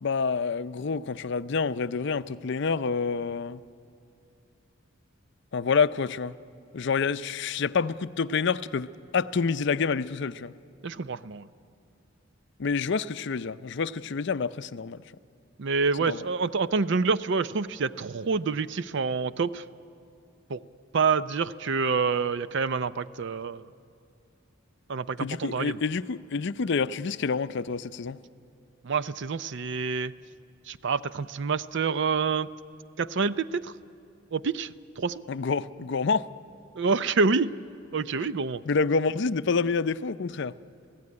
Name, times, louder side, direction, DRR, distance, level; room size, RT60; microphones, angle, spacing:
voice 1, 0.0-3.6 5.5-6.4 6.7-10.5 12.6-15.0 16.1-16.3 25.2-28.2 35.3-36.3 38.7-40.5, left 5 dB, 60° left, 14 dB, 0.5 m, -28 dB
voice 2, 10.8-11.5 15.6-19.6 20.5-20.6 20.9-23.6 24.9-25.8 28.8-30.1 30.7-32.5 33.0-33.7 34.3-34.7 35.0-35.2 36.8-37.5 37.9-38.6, right 4 dB, 60° right, 15 dB, 0.5 m, -27 dB
26.5 x 16.5 x 9.7 m, 2.6 s
head